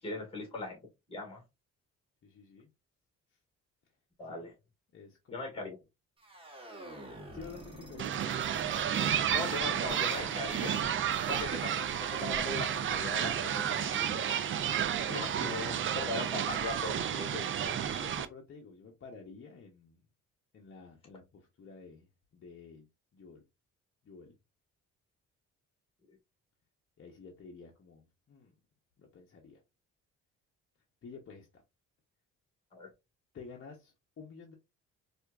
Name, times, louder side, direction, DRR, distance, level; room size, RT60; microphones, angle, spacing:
voice 1, 0.0-0.8 1.1-1.4 4.2-4.5 5.3-5.7 9.3-10.8 11.3-14.3 15.1-18.0 26.1-26.2 32.7-32.9, left 2 dB, 20° left, 1.8 m, -39 dB
voice 2, 2.2-2.7 3.3-3.4 4.3-4.4 4.9-5.7 7.3-8.2 11.3-11.7 15.0-15.7 18.0-20.1 20.5-22.9 23.1-23.4 24.0-24.4 27.0-28.5 29.0-29.6 31.0-31.6 33.3-34.5, left 5 dB, 45° left, 0.9 m, -51 dB
sound 1, 6.2-11.7, right 1 dB, 20° right, 1.3 m, -49 dB
sound 2, 8.0-18.3, right 9 dB, 45° right, 0.4 m, -32 dB
4.3 x 2.5 x 2.3 m
cardioid pair, 90°, 30 cm